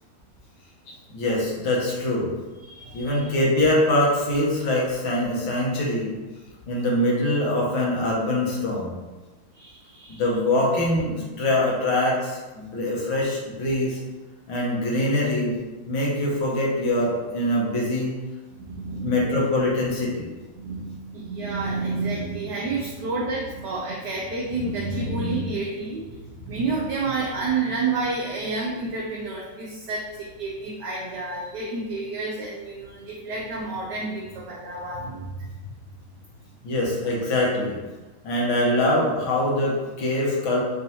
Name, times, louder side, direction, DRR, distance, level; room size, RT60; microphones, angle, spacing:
voice 1, 0.9-2.3 2.9-6.1 6.7-8.9 10.1-14.0 14.5-15.6 15.9-18.1 19.0-20.3 36.6-37.8 38.2-40.6, left 1 dB, 75° left, -4 dB, 1.7 m, -23 dB
voice 2, 2.6-3.3 9.5-10.2 18.7-19.1 20.5-26.0 26.4-35.3, right 3 dB, 70° right, -4 dB, 1.0 m, -29 dB
5.2 x 2.8 x 2.7 m, 1.2 s
omnidirectional pair, 2.3 m